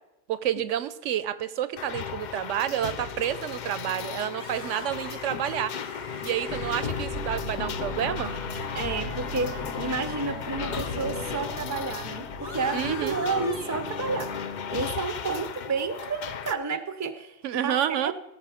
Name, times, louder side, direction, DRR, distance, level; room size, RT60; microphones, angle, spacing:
voice 1, 0.3-5.7 6.2-8.3 12.7-13.2 17.4-18.1, right 10 dB, 75° right, 14 dB, 0.9 m, -29 dB
sound 1, 1.8-16.5, left 7 dB, 60° left, 0.5 m, -36 dB
sound 2, 4.3-10.9 11.2-14.4, left 2 dB, 25° left, 1.1 m, -45 dB
sound 3, 6.5-14.9, left 2 dB, 80° left, 1.5 m, -37 dB
voice 2, 8.7-14.3 14.7-17.4 17.6-18.1, right 4 dB, 20° right, 10 dB, 0.5 m, -30 dB
17.0 x 6.5 x 4.9 m, 0.96 s
omnidirectional pair, 1.3 m